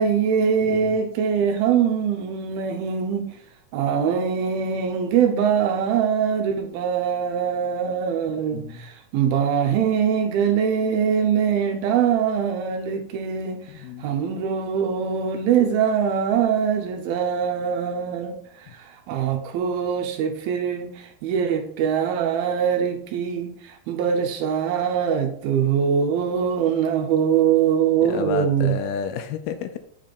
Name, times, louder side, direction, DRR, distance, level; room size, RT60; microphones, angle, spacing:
voice 1, 0.0-3.3 3.7-13.6 14.0-18.4 19.1-28.8, right 7 dB, 75° right, 4 dB, 2.4 m, -23 dB
voice 2, 0.6-1.0 8.5-8.8 13.7-14.1 28.0-29.8, left 7 dB, 80° left, 9 dB, 2.4 m, -31 dB
7.5 x 4.0 x 5.0 m, 0.65 s
omnidirectional pair, 4.7 m